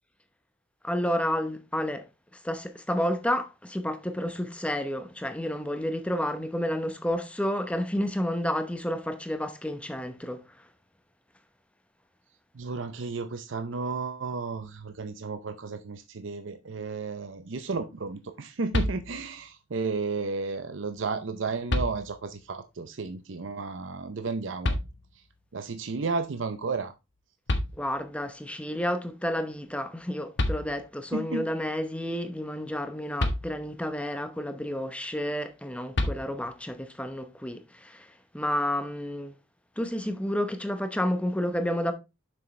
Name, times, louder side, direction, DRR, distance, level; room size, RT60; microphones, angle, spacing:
voice 1, 0.8-2.1 2.4-10.4 27.8-38.1 38.3-39.3 39.8-41.9, equal, 5° left, 0.8 m, -30 dB
voice 2, 12.5-24.8 25.5-26.9 31.1-31.4, right 4 dB, 70° right, 0.6 m, -33 dB
sound 1, 18.7-19.5 21.0-21.1 21.7-22.4 24.6-25.4 27.1-27.2 27.5-28.3 30.0-30.1 30.4-31.1 33.2-34.0 35.9-36.7, left 1 dB, 60° left, 1.1 m, -30 dB
7.1 x 6.3 x 3.2 m
head